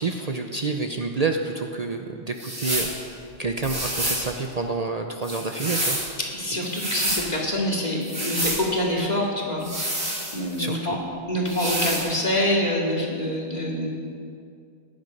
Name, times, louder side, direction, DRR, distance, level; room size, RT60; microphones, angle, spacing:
voice 1, 0.0-2.9 3.4-6.0 10.6-11.0, right 3 dB, 40° right, 4 dB, 0.8 m, -28 dB
sound 1, 2.4-2.9 3.6-4.2 5.2-6.1 6.6-7.2 8.0-8.6 9.6-10.6 11.5-12.1, right 1 dB, 80° right, 4.1 m, -28 dB
voice 2, 6.3-10.0 10.3-11.0 11.3-13.9, left 1 dB, 40° left, -3 dB, 2.5 m, -26 dB
16.5 x 11.5 x 5.3 m, 2.3 s
omnidirectional pair, 1.1 m